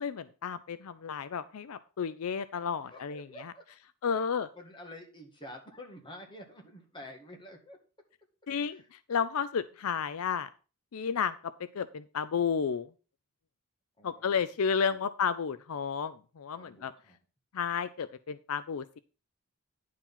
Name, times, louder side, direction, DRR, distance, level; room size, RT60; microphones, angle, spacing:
voice 1, 0.0-3.5 4.0-4.5 8.5-10.5 10.9-11.3 11.7-12.9 14.0-16.9 17.5-19.0, left 6 dB, 75° left, 14 dB, 0.5 m, -32 dB
voice 2, 2.9-3.6 4.0-4.3 4.5-7.8 8.6-8.9 14.0-14.4 14.6-15.0 16.6-17.2, left 1 dB, 20° left, 2 dB, 1.9 m, -49 dB
10.5 x 4.7 x 5.5 m, 0.35 s
head